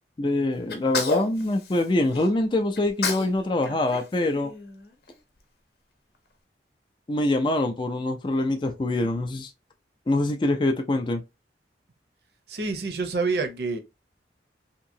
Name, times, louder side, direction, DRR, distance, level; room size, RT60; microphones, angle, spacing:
voice 1, 0.2-4.5 7.1-9.5 10.1-11.2, left 2 dB, 25° left, 0.4 m, -24 dB
Sneeze, 0.7-2.3 2.8-3.4 3.6-5.1, left 3 dB, 60° left, 0.7 m, -31 dB
voice 2, 12.5-13.8, right 4 dB, 60° right, 0.7 m, -27 dB
2.9 x 2.6 x 2.6 m
head